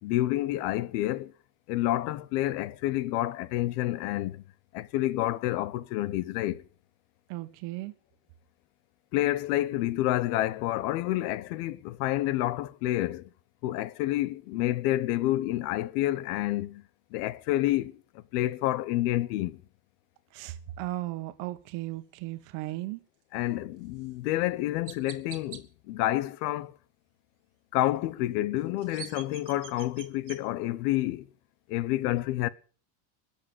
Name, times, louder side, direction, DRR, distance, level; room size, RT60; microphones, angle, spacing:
voice 1, 0.0-1.3 1.7-4.4 4.7-6.6 9.1-13.3 13.6-16.8 17.1-19.6 23.3-26.8 27.7-31.3 31.7-32.5, left 15 dB, 75° left, 1.2 m, -29 dB
voice 2, 7.3-7.9 20.3-23.0, right 17 dB, 60° right, 1.6 m, -36 dB
Chirp tweet, 24.0-24.1 24.9-25.6 28.6-30.4, right 11 dB, 40° right, 2.3 m, -45 dB
21.5 x 7.3 x 8.0 m
cardioid pair, 150°, 46 cm